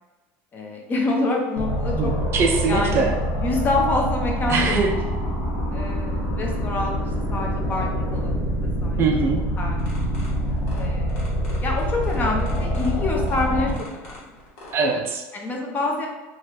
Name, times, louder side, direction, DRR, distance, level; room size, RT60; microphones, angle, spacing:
voice 1, 0.5-2.1 2.7-3.1 3.3-5.0 5.7-7.0 7.3-8.3 8.8-9.0 9.6-9.8 10.7-11.1 11.6-14.2 15.3-16.1, left 2 dB, 25° left, 0 dB, 0.6 m, -26 dB
sound 1, 1.6-13.7, equal, 60° left, 0.9 m, -25 dB
voice 2, 2.0-3.1 4.5-4.9 9.0-9.4 14.7-15.2, right 4 dB, 35° right, 3 dB, 0.4 m, -22 dB
sound 2, 9.8-14.8, left 1 dB, 90° left, 1.1 m, -43 dB
2.9 x 2.4 x 3.0 m, 1.2 s
supercardioid pair, 135°, 7 cm